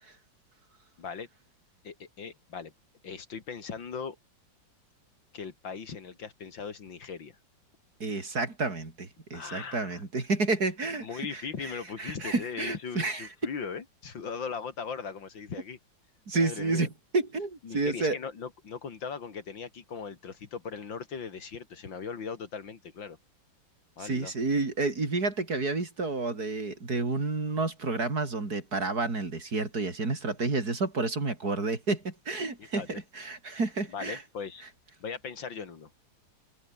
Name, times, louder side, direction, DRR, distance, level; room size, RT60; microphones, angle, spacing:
voice 1, 1.8-2.7 3.0-4.2 5.3-7.4 9.3-10.0 11.0-15.8 16.3-16.9 17.6-23.2 24.0-24.3 32.6-33.0 33.9-34.6 35.0-35.9, left 6 dB, 75° left, 3.1 m, -39 dB
voice 2, 8.0-11.7 12.0-13.3 16.3-18.2 24.0-34.2, right 3 dB, 50° right, 4.4 m, -30 dB
omnidirectional pair, 2.1 m